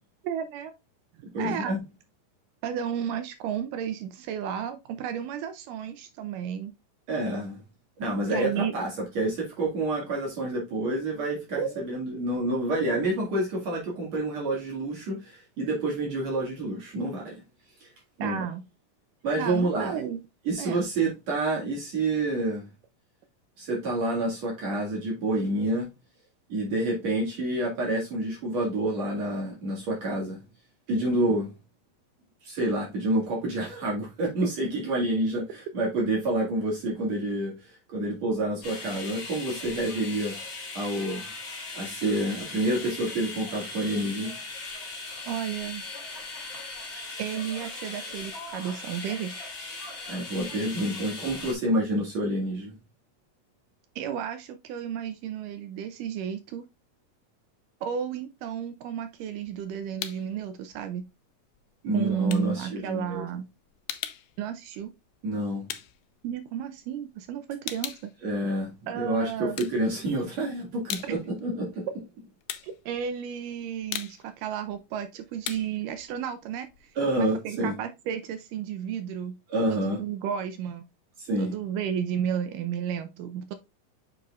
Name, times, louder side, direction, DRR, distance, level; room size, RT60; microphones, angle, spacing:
voice 1, 0.2-0.7 1.4-1.8 2.6-6.7 8.3-8.7 11.6-11.8 18.2-18.6 19.4-20.2 20.6-20.8 45.3-45.8 47.2-49.4 54.0-56.7 57.8-61.1 61.9-63.4 64.4-64.9 66.2-68.1 68.9-69.6 72.6-79.4 79.7-80.9 81.4-83.5, right 8 dB, 80° right, 2.2 m, -33 dB
voice 2, 1.3-1.8 7.1-7.6 8.0-8.9 9.1-17.4 17.8-17.9 18.2-18.4 19.2-20.0 20.4-22.7 23.6-25.9 26.5-30.4 30.9-31.5 32.4-40.3 40.7-41.3 41.7-44.3 50.1-52.7 61.8-63.2 65.2-65.7 68.2-71.8 77.0-77.7 79.5-80.0 81.2-81.5, right 1 dB, 55° right, 3.0 m, -28 dB
sound 1, 38.6-51.5, left 3 dB, 35° left, 3.2 m, -39 dB
sound 2, 59.1-60.4 60.7-66.9 67.3-69.0 69.4-70.3 70.6-77.3, left 12 dB, 75° left, 1.8 m, -40 dB
7.5 x 5.4 x 2.4 m
omnidirectional pair, 3.9 m